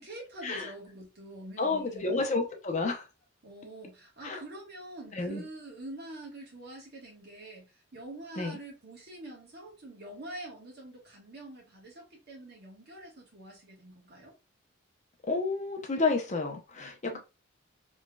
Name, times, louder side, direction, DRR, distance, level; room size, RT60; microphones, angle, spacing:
voice 1, 0.0-2.1 3.4-14.3 17.1-17.2, right 1 dB, 50° right, 1.2 m, -46 dB
voice 2, 1.6-3.1 4.2-4.4 5.1-5.5 8.4-8.6 15.3-17.2, left 3 dB, 35° left, 0.7 m, -30 dB
3.8 x 3.1 x 2.3 m
head